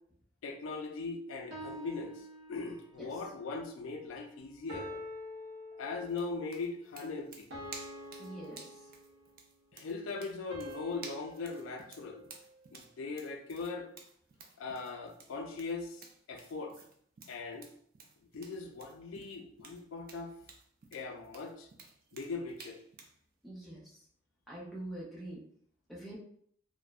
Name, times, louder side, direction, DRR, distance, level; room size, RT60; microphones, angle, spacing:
voice 1, 0.4-5.0 5.8-7.5 9.7-12.2 12.7-13.9 14.6-16.8 17.3-17.7 18.3-20.3 20.9-21.7 22.1-22.8, left 4 dB, 80° left, 3 dB, 0.4 m, -40 dB
sound 1, 1.5-3.1 4.7-6.3 7.5-9.4 10.5-12.8, left 1 dB, 80° right, 0.7 m, -47 dB
sound 2, 6.1-23.2, right 4 dB, 50° right, 0.4 m, -53 dB
voice 2, 8.2-8.7 23.4-24.0 24.5-25.4 25.9-26.2, right 1 dB, ahead, -5 dB, 0.6 m, -44 dB
2.5 x 2.1 x 2.3 m, 0.64 s
head